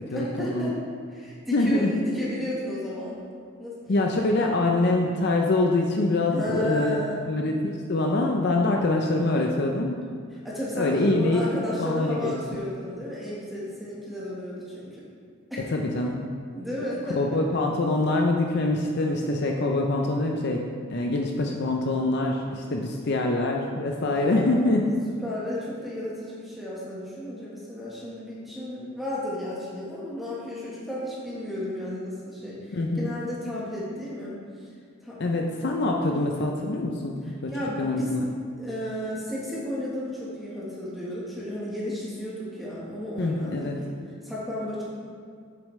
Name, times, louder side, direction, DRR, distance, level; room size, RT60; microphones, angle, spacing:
voice 1, 0.1-0.8 1.1-3.2 3.6-3.8 4.4-4.5 6.3-7.4 10.4-15.1 15.5-15.6 16.5-17.4 24.1-24.8 25.2-34.4 35.0-35.2 37.5-38.1 38.5-43.9 44.2-44.8, left 1 dB, ahead, -8 dB, 1.3 m, -33 dB
voice 2, 1.5-1.9 3.9-7.0 7.3-10.0 10.8-11.5 11.8-12.3 15.6-16.2 17.1-24.9 32.7-33.1 35.2-37.5 37.8-38.3 43.2-43.8, left 2 dB, 50° left, 1 dB, 0.5 m, -25 dB
8.0 x 6.9 x 3.2 m, 2.1 s
head